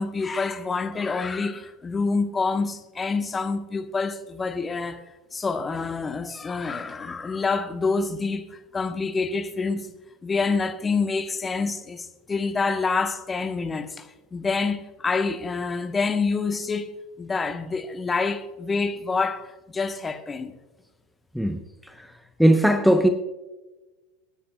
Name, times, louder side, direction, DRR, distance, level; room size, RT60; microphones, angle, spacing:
voice 1, 0.0-5.0 5.3-9.9 10.2-16.9 17.2-20.5, left 4 dB, 20° left, 1.2 m, -27 dB
voice 2, 22.4-23.1, right 1 dB, ahead, 0.8 m, -17 dB
27.0 x 10.0 x 2.3 m
figure-of-eight pair, 80°, 0 cm